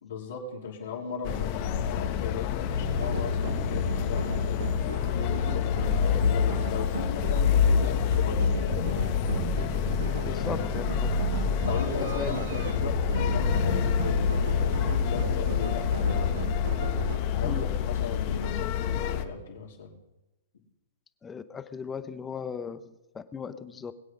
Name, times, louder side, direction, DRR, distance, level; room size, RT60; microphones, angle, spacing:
voice 1, 0.0-4.7 5.1-9.0 10.2-10.8 11.6-16.4 17.3-19.9, left 5 dB, 75° left, -6 dB, 3.1 m, -37 dB
sound 1, 1.2-19.2, left 7 dB, 40° left, 1.2 m, -27 dB
sound 2, 2.7-17.2, right 5 dB, 80° right, 1.5 m, -36 dB
voice 2, 10.2-11.1 11.9-12.5 17.4-17.7 21.2-23.9, left 6 dB, 15° left, 12 dB, 0.8 m, -37 dB
21.5 x 8.2 x 5.3 m, 0.99 s
hypercardioid pair, 140°, 0 cm